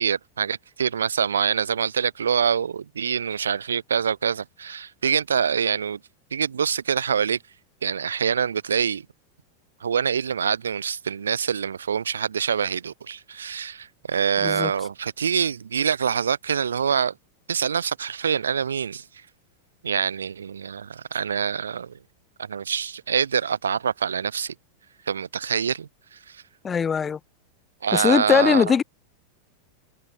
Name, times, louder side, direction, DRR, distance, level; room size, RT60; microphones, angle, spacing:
voice 1, 0.0-6.0 6.3-7.4 7.8-9.0 9.8-17.1 17.5-19.0 19.8-21.9 22.4-24.5 25.1-26.2 27.8-28.7, right 7 dB, 70° right, 0.6 m, -25 dB
voice 2, 26.6-27.2 27.9-28.8, left 6 dB, 20° left, 0.6 m, -20 dB
figure-of-eight pair, 90°, 0 cm